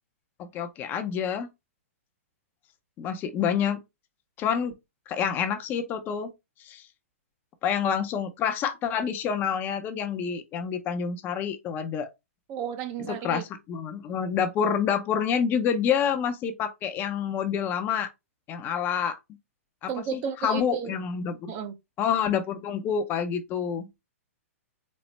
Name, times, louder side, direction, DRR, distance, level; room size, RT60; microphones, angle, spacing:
voice 1, 0.4-1.5 3.0-3.8 4.4-4.7 5.1-6.3 6.6-6.8 7.6-12.1 13.1-13.4 13.7-18.1 18.5-19.2 19.8-21.5 22.0-23.9, left 7 dB, 25° left, 0.5 m, -28 dB
voice 2, 12.5-13.4 19.9-21.0 21.5-21.8, right 7 dB, 30° right, 0.6 m, -33 dB
4.2 x 2.0 x 3.2 m
hypercardioid pair, 135°, 8 cm